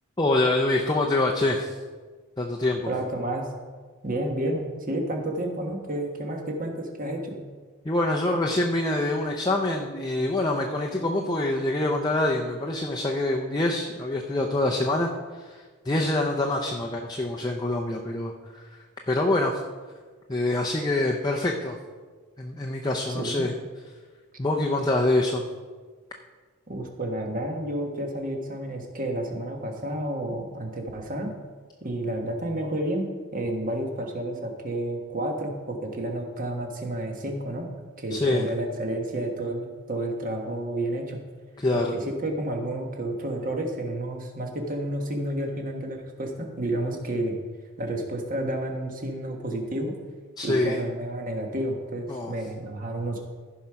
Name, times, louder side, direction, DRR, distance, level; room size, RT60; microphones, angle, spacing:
voice 1, 0.2-1.8 2.4-2.9 7.8-18.6 19.1-19.6 20.3-21.8 22.4-23.5 24.4-25.4 38.1-38.5 41.6-41.9 50.4-50.8 52.1-52.3, left 2 dB, 20° left, 0 dB, 0.6 m, -25 dB
voice 2, 2.9-3.5 4.0-7.4 23.1-23.4 26.7-31.3 31.8-33.1 33.3-37.7 38.0-41.2 41.7-47.3 47.8-49.9 50.4-53.2, right 1 dB, 40° right, 2 dB, 1.4 m, -30 dB
14.5 x 4.9 x 5.8 m, 1.5 s
head